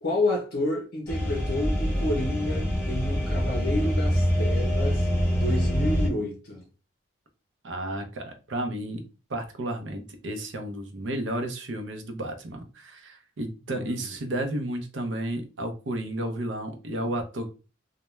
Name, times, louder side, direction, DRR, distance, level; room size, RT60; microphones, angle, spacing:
voice 1, 0.0-5.1 5.3-6.7 13.7-14.1, left 1 dB, 55° left, 0.6 m, -30 dB
sound 1, 1.1-6.1, equal, 10° left, 0.8 m, -25 dB
voice 2, 7.6-9.0 9.3-17.5, right 1 dB, 70° right, 0.5 m, -32 dB
2.2 x 2.1 x 3.0 m
head